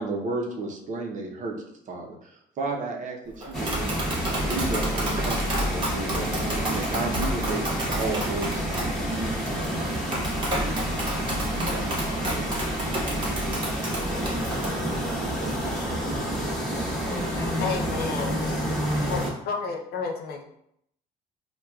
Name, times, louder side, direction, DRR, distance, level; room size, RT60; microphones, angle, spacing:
voice 1, 0.0-1.6 1.9-3.9 4.4-7.6 7.9-11.0 11.5-12.6, right 3 dB, 50° right, 0 dB, 0.6 m, -34 dB
Tap, 3.4-14.7, equal, 30° right, 1.1 m, -31 dB
sound 1, 3.5-19.3, right 1 dB, ahead, 1.1 m, -29 dB
voice 2, 17.0-19.3, left 1 dB, 20° left, 3 dB, 0.4 m, -31 dB
voice 3, 17.6-18.6 19.1-20.5, left 5 dB, 65° left, 2 dB, 0.6 m, -31 dB
4.4 x 2.2 x 2.3 m, 0.74 s
cardioid pair, 110°, 17 cm